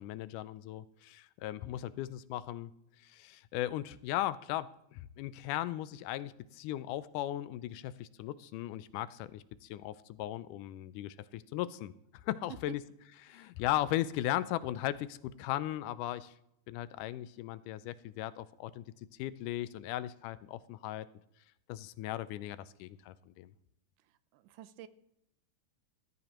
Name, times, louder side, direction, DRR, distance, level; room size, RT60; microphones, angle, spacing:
voice 1, 0.0-2.7 3.0-11.9 12.2-12.8 13.2-16.3 16.7-18.8 19.2-21.1 21.7-23.5, left 14 dB, 90° left, 15 dB, 2.2 m, -37 dB
voice 2, 24.0-24.9, right 13 dB, 90° right, 13 dB, 2.3 m, -50 dB
18.0 x 13.5 x 3.0 m, 0.79 s
omnidirectional pair, 3.6 m